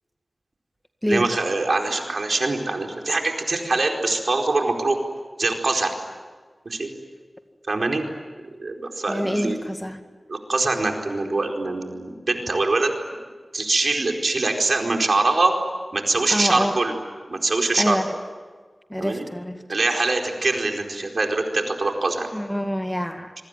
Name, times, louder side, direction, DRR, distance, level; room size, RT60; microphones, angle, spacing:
voice 1, 1.1-5.0 5.4-5.9 6.6-6.9 7.7-8.0 8.6-9.7 10.3-12.9 13.5-15.5 15.9-16.9 17.3-18.0 19.0-19.2 19.7-22.3, right 3 dB, 70° right, 2 dB, 4.5 m, -23 dB
voice 2, 9.1-10.0 16.3-16.8 17.8-18.1 18.9-19.6 22.3-23.3, equal, 5° left, 6 dB, 2.0 m, -26 dB
26.0 x 24.0 x 9.2 m, 1.5 s
wide cardioid pair, 60°, 0 cm